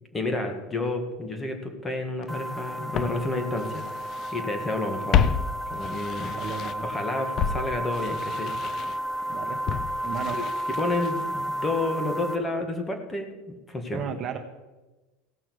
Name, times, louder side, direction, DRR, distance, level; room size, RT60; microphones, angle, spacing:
voice 1, 0.1-3.8 4.3-5.2 5.7-6.4 6.8-8.5 10.3-10.4 10.7-13.3 13.7-14.1, left 2 dB, 15° left, 5 dB, 1.8 m, -30 dB
Walk footsteps, 2.2-2.3 2.9-4.4 4.7-7.0 7.4-11.4 11.7-11.8, left 8 dB, 40° left, 0.6 m, -30 dB
sound 1, 2.3-12.4, equal, ahead, 1.3 m, -32 dB
voice 2, 6.4-6.9 9.3-9.6 10.0-10.4 13.9-14.4, right 7 dB, 40° right, 5 dB, 1.2 m, -34 dB
16.5 x 6.3 x 6.3 m, 1.1 s
supercardioid pair, 125°, 0 cm